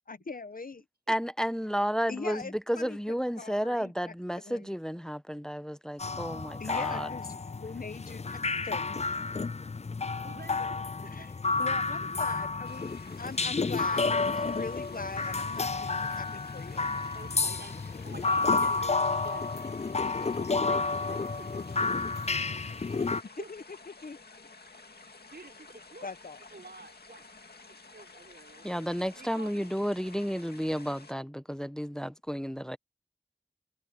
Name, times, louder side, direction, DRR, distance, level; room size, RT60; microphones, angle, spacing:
voice 1, 0.1-0.8 2.1-3.0 3.4-4.1 4.4-4.7 6.6-9.1 11.0-11.3 11.6-12.9 13.2-16.9 23.4-24.2 26.0-26.4, left 4 dB, 60° left, 0.9 m, -41 dB
voice 2, 1.1-7.1 28.6-32.8, equal, 5° left, 0.8 m, -32 dB
sound 1, 6.0-23.2, left 4 dB, 45° left, 0.5 m, -31 dB
voice 3, 10.2-11.3 17.1-19.4 19.9-21.5 22.4-22.6 23.4-23.5 25.3-26.1 26.5-27.3 27.7-29.7, right 3 dB, 90° right, 5.5 m, -49 dB
sound 2, 12.6-31.1, left 3 dB, 90° left, 2.0 m, -52 dB
wide cardioid pair, 50°, 16 cm